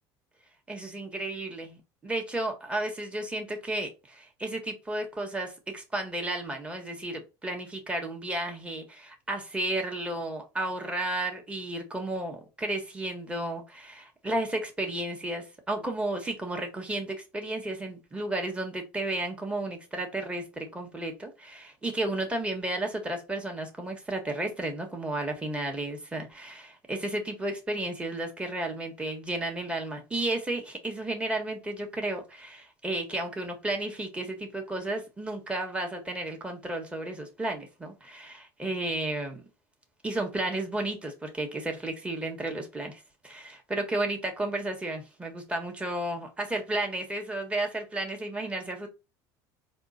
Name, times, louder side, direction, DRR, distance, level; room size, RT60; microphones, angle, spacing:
voice 1, 0.7-39.4 40.0-48.9, right 2 dB, 10° right, 1.3 m, -33 dB
4.3 x 2.5 x 4.1 m
supercardioid pair, 105°, 9 cm